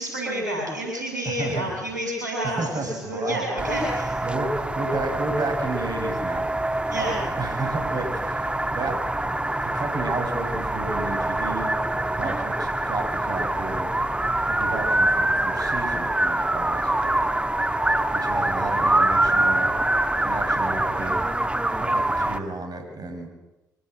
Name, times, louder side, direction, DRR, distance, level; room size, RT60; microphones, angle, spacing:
voice 1, 0.0-4.2 6.8-7.2, equal, 90° right, -1 dB, 7.2 m, -29 dB
voice 2, 1.2-1.7 2.4-3.4 3.8-11.8 12.1-13.9 14.5-16.9 18.1-19.7 20.2-21.3 21.8-23.3, right 3 dB, 45° right, 4 dB, 6.2 m, -32 dB
sound 1, 3.6-22.4, right 1 dB, 10° right, 1.7 m, -25 dB
24.5 x 18.5 x 7.7 m, 1.0 s
figure-of-eight pair, 45°, 9 cm